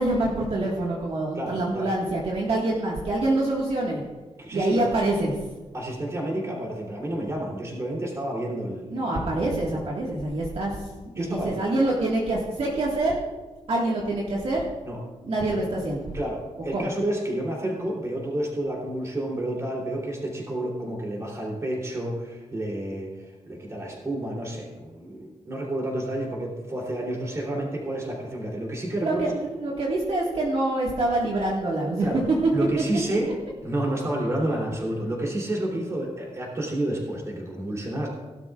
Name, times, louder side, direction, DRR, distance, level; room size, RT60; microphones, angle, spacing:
voice 1, 0.0-4.0 4.5-5.3 8.9-10.9 11.2-13.2 13.7-14.6 15.2-16.1 16.7-16.9 29.0-32.2, right 2 dB, 55° right, -4 dB, 1.8 m, -26 dB
voice 2, 1.3-1.9 4.4-4.9 5.7-9.3 11.2-11.7 14.8-15.0 16.1-29.3 32.0-32.2 32.5-33.3 33.6-38.1, right 1 dB, 25° right, -2 dB, 3.2 m, -30 dB
17.5 x 12.0 x 2.4 m, 1.2 s
wide cardioid pair, 160°, 12 cm